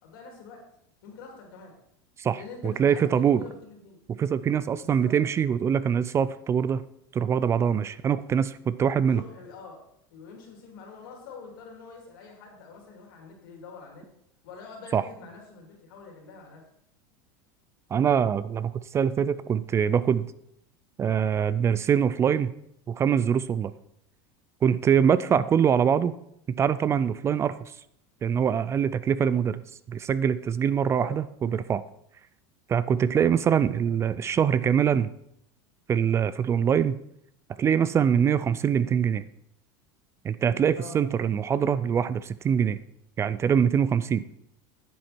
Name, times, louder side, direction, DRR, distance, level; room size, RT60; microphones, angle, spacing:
voice 1, 0.0-0.6 1.0-1.7 2.3-4.0 4.8-5.1 9.0-9.8 10.1-14.0 14.4-16.6 25.5-25.7 31.0-31.2 33.1-33.3 40.7-41.0, left 5 dB, 80° left, 1 dB, 3.1 m, -45 dB
voice 2, 2.2-3.4 4.1-6.8 7.1-9.2 14.9-15.0 17.9-20.3 21.0-22.5 22.9-23.7 24.6-26.1 26.5-27.7 28.2-29.6 29.9-31.8 32.7-35.1 35.9-37.0 37.6-39.2 40.2-42.8 43.2-44.2, right 8 dB, 25° right, 16 dB, 0.4 m, -24 dB
9.7 x 7.8 x 4.4 m, 0.74 s
supercardioid pair, 130°, 11 cm